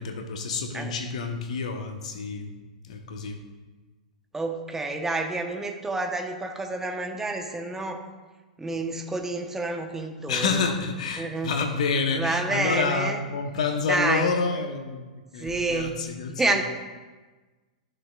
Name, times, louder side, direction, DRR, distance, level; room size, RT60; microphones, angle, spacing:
voice 1, 0.0-2.5 2.8-3.4 10.3-15.0 15.3-16.6, left 4 dB, 60° left, 5 dB, 1.1 m, -28 dB
voice 2, 4.3-8.0 8.6-10.7 11.2-11.5 12.1-13.2 13.8-14.3 15.3-16.0 16.3-16.6, right 2 dB, 10° right, 4 dB, 1.0 m, -29 dB
14.5 x 6.7 x 2.4 m, 1.3 s
figure-of-eight pair, 105°, 4 cm